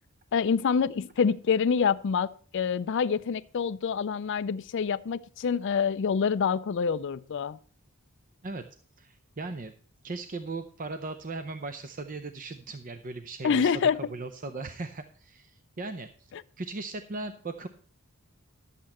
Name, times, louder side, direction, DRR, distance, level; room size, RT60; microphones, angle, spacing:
voice 1, 0.3-7.6 13.4-14.1 16.3-16.4, left 6 dB, 60° left, 0.4 m, -26 dB
voice 2, 9.0-9.7 10.0-16.3 16.6-17.7, right 3 dB, 40° right, 0.6 m, -38 dB
11.5 x 8.4 x 4.2 m
head